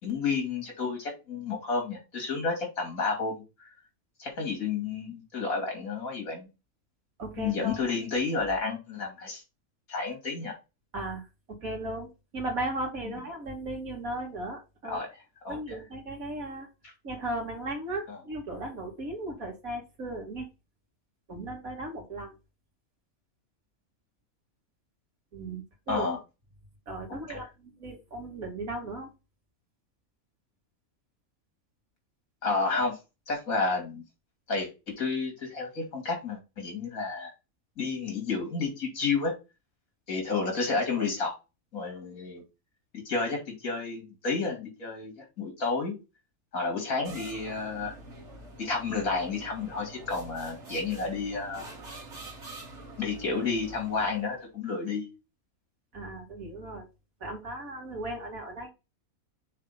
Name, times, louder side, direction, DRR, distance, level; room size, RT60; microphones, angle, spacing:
voice 1, 0.0-3.7 4.2-6.5 7.4-9.4 9.9-10.6 14.8-15.8 16.8-16.9 18.1-18.2 25.9-26.2 27.3-27.4 32.4-33.0 33.3-34.0 34.5-34.7 35.0-37.3 37.8-39.3 40.1-41.3 41.7-42.4 42.9-46.0 46.5-47.9 48.6-51.6 53.0-55.1, left 4 dB, 70° left, 2 dB, 3.1 m, -31 dB
voice 2, 7.2-7.8 10.9-11.2 11.5-15.0 15.5-16.7 17.0-20.5 21.3-22.3 25.3-26.1 26.9-29.1 55.9-56.9 57.2-58.7, right 1 dB, 70° right, 1 dB, 2.4 m, -36 dB
sound 1, 47.1-54.5, right 2 dB, 50° right, 2.0 m, -46 dB
6.5 x 3.3 x 5.6 m, 0.27 s
omnidirectional pair, 1.6 m